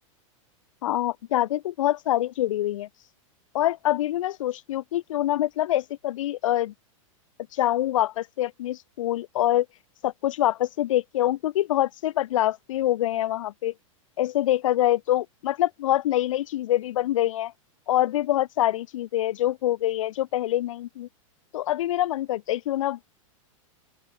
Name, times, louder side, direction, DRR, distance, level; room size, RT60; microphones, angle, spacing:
voice 1, 0.8-2.9 3.5-6.7 7.5-9.7 10.0-13.7 14.2-17.5 17.9-21.1 21.5-23.0, left 13 dB, 70° left, 0.8 m, -25 dB
open air
supercardioid pair, 175°, 17 cm